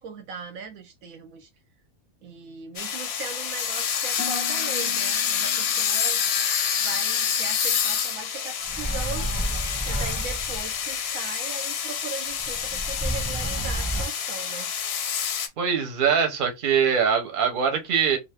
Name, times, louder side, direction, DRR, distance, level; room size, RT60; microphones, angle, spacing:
voice 1, 0.0-1.5 2.2-6.2 6.8-9.3 9.9-14.7, right 5 dB, 75° right, 1.0 m, -39 dB
sound 1, 2.8-15.5, left 8 dB, 60° left, 0.7 m, -27 dB
Harp, 4.2-8.3 8.6-9.1 9.6-10.0, left 6 dB, 5° left, 0.6 m, -43 dB
sound 2, 8.7-10.7 12.3-14.1, right 1 dB, 15° right, 1.0 m, -30 dB
voice 2, 15.6-18.2, right 7 dB, 40° right, 0.9 m, -22 dB
2.6 x 2.6 x 3.4 m
omnidirectional pair, 1.6 m